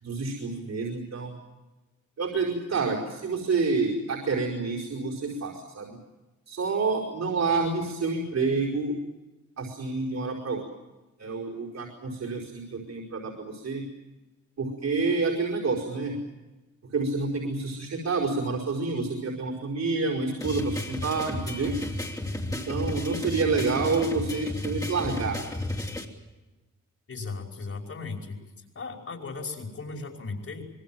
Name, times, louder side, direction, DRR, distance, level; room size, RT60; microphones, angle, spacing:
voice 1, 0.0-1.3 2.2-6.0 6.5-9.0 9.6-10.6 11.2-13.8 14.6-16.2 16.9-21.7 22.5-25.4, right 4 dB, 60° right, -2 dB, 5.0 m, -28 dB
sound 1, 20.4-26.0, left 1 dB, 10° left, 3.2 m, -33 dB
voice 2, 27.1-28.4 28.8-30.6, left 4 dB, 50° left, 2 dB, 5.5 m, -36 dB
26.0 x 23.5 x 7.6 m, 1.1 s
wide cardioid pair, 160°, 30 cm